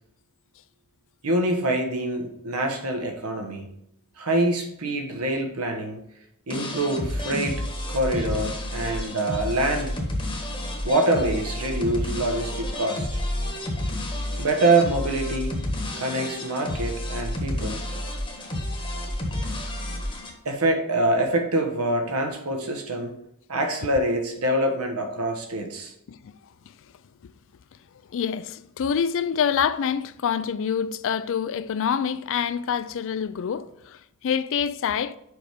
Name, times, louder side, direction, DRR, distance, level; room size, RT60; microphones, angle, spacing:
voice 1, 1.2-3.7 4.2-6.0 6.5-7.6 7.9-9.9 10.8-13.2 14.4-15.6 16.0-17.8 20.4-23.2 23.5-25.9, right 1 dB, 85° right, 1.2 m, -25 dB
sound 1, 6.5-20.3, left 1 dB, 25° left, 1.1 m, -30 dB
voice 2, 28.1-35.1, left 7 dB, 60° left, 0.4 m, -26 dB
5.0 x 4.7 x 5.1 m
head